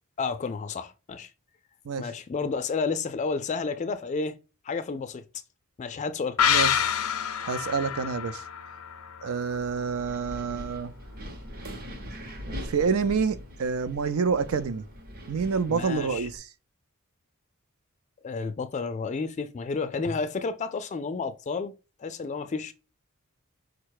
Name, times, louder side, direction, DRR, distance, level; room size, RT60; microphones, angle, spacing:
voice 1, 0.2-1.3 2.0-4.4 4.6-5.2 5.8-6.4 6.8-6.9 15.7-16.3 18.2-21.7 22.0-22.7, left 4 dB, 30° left, 0.3 m, -31 dB
sound 1, 6.4-9.8 10.1-10.2, left 8 dB, 85° left, 0.6 m, -27 dB
voice 2, 7.4-8.4 9.2-10.9 12.7-14.8 15.3-16.5, right 5 dB, 70° right, 0.5 m, -27 dB
Wind, 9.5-16.4, equal, 45° right, 0.8 m, -41 dB
4.8 x 2.2 x 4.6 m
head